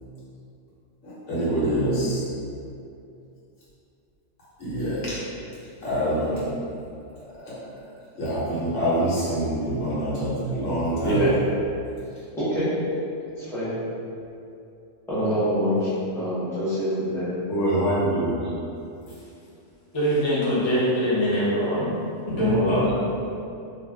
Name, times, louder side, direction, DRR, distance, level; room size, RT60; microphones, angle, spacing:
voice 1, 1.0-2.3 4.6-5.2 5.8-6.4 7.4-7.6 8.2-11.3 17.5-18.5 22.3-22.8, right 1 dB, 70° left, -9 dB, 1.3 m, -25 dB
voice 2, 12.4-12.7 13.4-13.7 15.1-17.3, equal, 5° left, -12 dB, 0.7 m, -25 dB
voice 3, 19.9-21.9 22.3-23.0, equal, 35° left, -9 dB, 0.5 m, -22 dB
2.4 x 2.4 x 3.4 m, 2.6 s
omnidirectional pair, 1.3 m